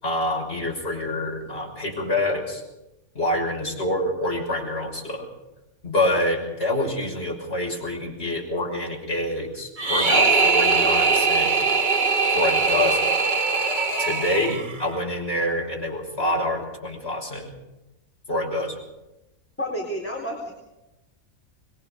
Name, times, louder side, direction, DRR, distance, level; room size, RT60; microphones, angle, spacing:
voice 1, 0.0-2.6 3.1-5.3 5.8-11.6 12.3-13.1 14.0-17.5 18.3-18.8, left 1 dB, 50° left, 0 dB, 6.6 m, -26 dB
sound 1, 9.8-14.9, right 4 dB, 35° right, 1.5 m, -21 dB
voice 2, 19.6-20.5, equal, 10° left, -2 dB, 4.1 m, -31 dB
26.0 x 22.0 x 5.2 m, 0.95 s
omnidirectional pair, 1.4 m